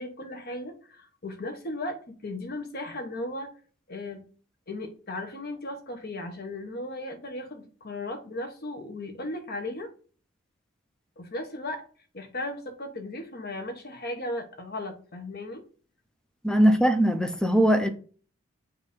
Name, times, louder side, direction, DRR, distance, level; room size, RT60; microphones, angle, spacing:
voice 1, 0.0-3.5 3.9-4.2 4.7-9.9 11.2-11.8 12.1-15.6, left 1 dB, 45° left, 1.1 m, -36 dB
voice 2, 16.4-17.9, right 1 dB, 5° left, 0.5 m, -21 dB
7.3 x 2.7 x 5.2 m
head